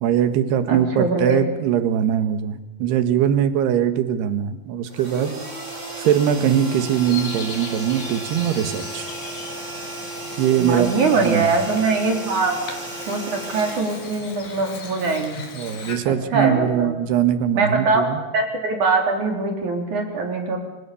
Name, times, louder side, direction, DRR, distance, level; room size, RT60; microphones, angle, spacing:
voice 1, 0.0-5.3 6.0-9.1 10.4-11.5 15.6-18.2, right 9 dB, 85° right, 10 dB, 3.6 m, -21 dB
voice 2, 0.7-1.4 10.6-12.6 13.1-15.5 16.1-17.0 17.5-20.6, right 3 dB, 50° right, 3 dB, 5.1 m, -22 dB
sound 1, 4.9-14.8, right 2 dB, 15° right, 4.9 m, -34 dB
Bird vocalization bird call bird song, 6.9-16.0, left 5 dB, 65° left, 5.1 m, -39 dB
28.5 x 27.0 x 7.1 m, 1.0 s
omnidirectional pair, 4.6 m